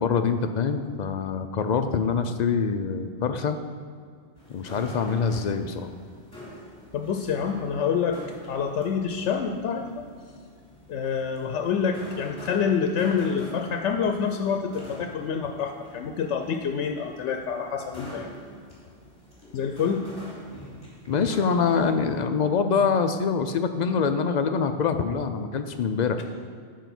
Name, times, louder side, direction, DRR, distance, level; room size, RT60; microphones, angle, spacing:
voice 1, 0.0-3.6 4.5-5.9 21.1-26.2, left 5 dB, 60° left, 8 dB, 0.5 m, -25 dB
sound 1, 4.4-22.2, left 1 dB, 20° left, 2.5 m, -45 dB
voice 2, 6.9-8.2 8.5-10.0 10.9-18.3 19.5-20.0, left 6 dB, 90° left, 5 dB, 0.9 m, -27 dB
9.1 x 4.6 x 6.0 m, 2.1 s
omnidirectional pair, 1.2 m